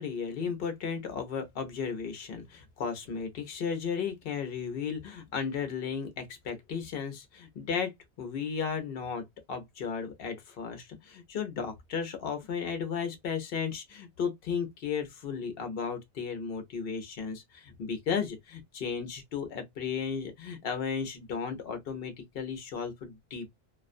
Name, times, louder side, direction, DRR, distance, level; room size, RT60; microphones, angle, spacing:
voice 1, 0.0-7.9 8.2-23.5, left 6 dB, 60° left, 0.9 m, -34 dB
2.5 x 2.2 x 2.4 m
omnidirectional pair, 1.1 m